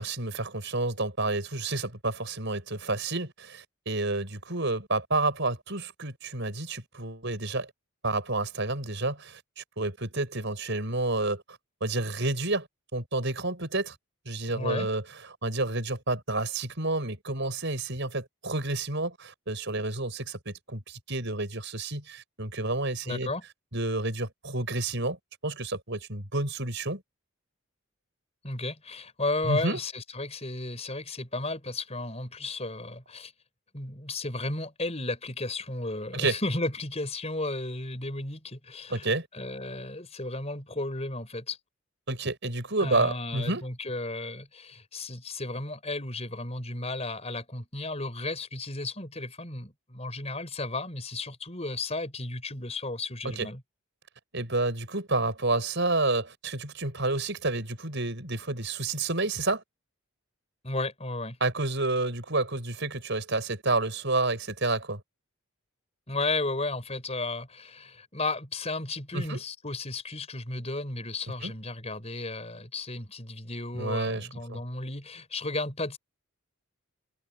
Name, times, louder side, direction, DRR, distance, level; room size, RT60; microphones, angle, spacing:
voice 1, 0.0-7.7 8.0-12.7 12.9-13.9 14.3-15.0 15.4-23.3 23.7-25.2 25.4-27.0 29.4-29.8 36.1-36.4 38.9-39.3 42.1-43.6 53.2-53.5 54.3-59.6 61.4-65.0 69.1-69.4 71.4-71.5 73.7-74.6, right 2 dB, 55° right, 6.3 m, -30 dB
voice 2, 14.5-14.9 23.0-23.4 28.4-33.3 33.7-41.6 42.8-53.6 60.6-61.4 66.1-76.0, left 2 dB, 30° left, 6.4 m, -34 dB
head